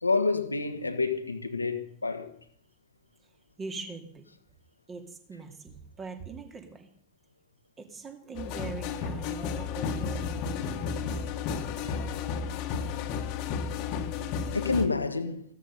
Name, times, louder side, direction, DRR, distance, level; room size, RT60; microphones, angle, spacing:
voice 1, 0.0-2.3 14.5-15.4, left 4 dB, 80° left, 1.5 m, -28 dB
voice 2, 3.6-4.3 4.9-6.9 7.8-10.6, right 4 dB, 20° right, 2.6 m, -42 dB
sound 1, 8.3-14.9, left 6 dB, 40° left, 1.7 m, -32 dB
15.5 x 13.0 x 5.5 m
figure-of-eight pair, 90°, 0 cm